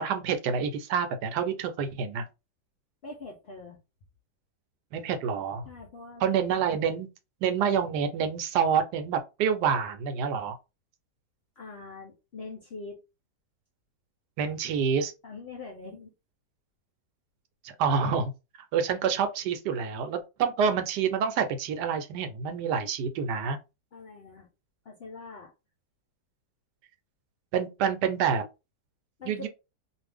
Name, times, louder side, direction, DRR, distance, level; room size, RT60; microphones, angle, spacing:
voice 1, 0.0-2.2 4.9-5.6 6.2-7.1 7.4-10.6 14.4-15.1 17.6-18.3 18.7-23.6 27.5-28.4 29.3-29.5, right 7 dB, 75° right, 1.1 m, -27 dB
voice 2, 3.0-3.8 5.6-6.3 11.6-13.0 15.2-16.1 23.9-24.5 24.8-25.5 29.2-29.5, left 3 dB, 65° left, 0.6 m, -43 dB
2.6 x 2.4 x 3.4 m
omnidirectional pair, 1.8 m